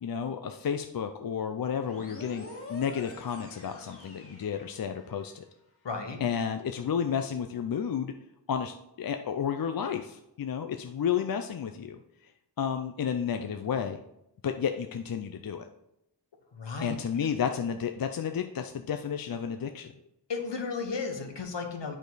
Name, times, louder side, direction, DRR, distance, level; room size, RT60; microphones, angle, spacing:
voice 1, 0.0-5.4 6.2-8.1 8.5-12.3 12.6-14.0 14.4-15.7 16.8-19.9, left 7 dB, 55° left, 6 dB, 0.5 m, -32 dB
sound 1, 1.8-5.3, left 2 dB, 30° left, 1.9 m, -47 dB
voice 2, 5.8-6.2 16.5-17.0 20.3-21.9, left 4 dB, 75° left, 4 dB, 1.3 m, -34 dB
8.9 x 5.0 x 4.0 m, 0.83 s
wide cardioid pair, 100°, 43 cm